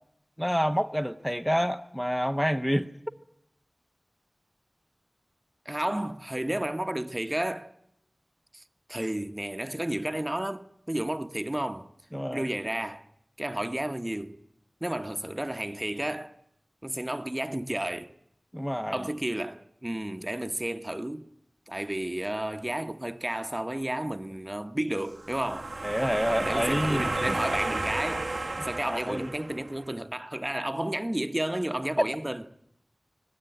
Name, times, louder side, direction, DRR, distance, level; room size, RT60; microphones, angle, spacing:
voice 1, 0.4-2.9 12.1-12.5 18.5-19.1 25.8-27.4 28.6-29.3, equal, 5° left, 0.8 m, -28 dB
voice 2, 5.6-7.7 8.5-8.6 8.9-11.9 12.3-13.1 13.4-14.4 14.8-16.4 16.8-18.1 18.9-21.3 21.7-25.8 26.4-32.4, right 1 dB, 20° right, 1.1 m, -32 dB
sound 1, 25.1-29.8, right 2 dB, 70° right, 0.9 m, -32 dB
24.5 x 19.0 x 9.1 m
wide cardioid pair, 40°, 0 cm